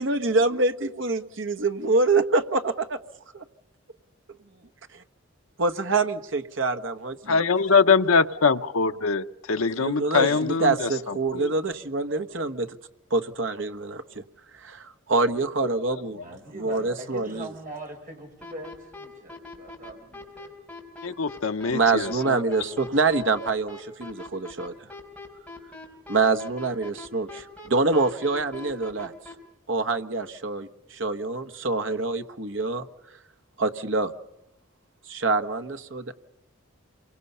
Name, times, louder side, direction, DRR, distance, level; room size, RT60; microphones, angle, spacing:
voice 1, 0.0-3.0 3.3-3.4 5.6-7.4 9.8-12.7 13.1-14.2 14.6-16.2 16.5-17.5 21.1-21.2 21.7-24.7 26.1-29.1 29.7-32.9 33.6-34.1 35.1-36.1, right 3 dB, 60° right, 8 dB, 1.3 m, -25 dB
voice 2, 7.3-11.5 21.0-22.4, left 5 dB, 85° left, 9 dB, 0.8 m, -23 dB
voice 3, 16.0-20.5, right 2 dB, 40° right, 1 dB, 6.3 m, -41 dB
sound 1, 18.4-29.3, left 2 dB, 5° left, 4.2 m, -41 dB
27.5 x 24.0 x 5.6 m, 0.97 s
head